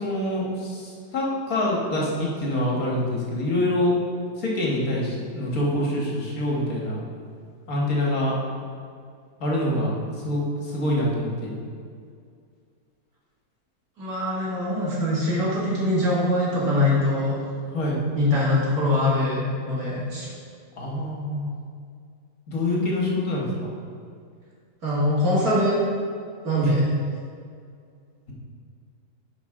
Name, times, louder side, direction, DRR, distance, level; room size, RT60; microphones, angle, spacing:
voice 1, 0.0-3.9 4.4-7.0 7.7-8.3 9.4-9.9 10.2-11.6 17.7-18.0 20.8-21.5 22.5-23.5 26.6-26.7, left 1 dB, 60° left, -3 dB, 1.8 m, -25 dB
voice 2, 14.0-17.4 18.2-20.3 24.8-25.8 26.4-26.8, left 1 dB, 65° right, -7 dB, 2.5 m, -23 dB
10.5 x 5.0 x 3.7 m, 2.2 s
omnidirectional pair, 1.7 m